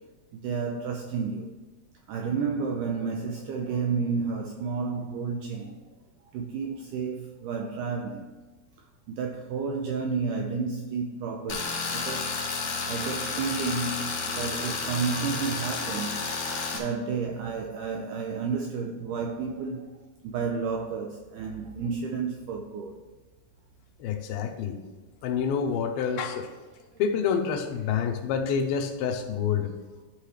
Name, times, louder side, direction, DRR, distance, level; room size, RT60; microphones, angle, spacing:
voice 1, 0.3-1.5 2.1-5.8 6.3-8.3 9.1-12.4 12.9-16.3 16.7-23.0 26.8-26.9 28.1-28.2 29.6-29.8, right 5 dB, 85° right, 1.8 m, -31 dB
Tools, 11.5-16.8, left 4 dB, 65° left, 1.5 m, -31 dB
voice 2, 24.0-24.8 25.2-26.5 27.0-29.7, left 7 dB, 85° left, 2.6 m, -27 dB
11.5 x 5.6 x 3.2 m
omnidirectional pair, 4.4 m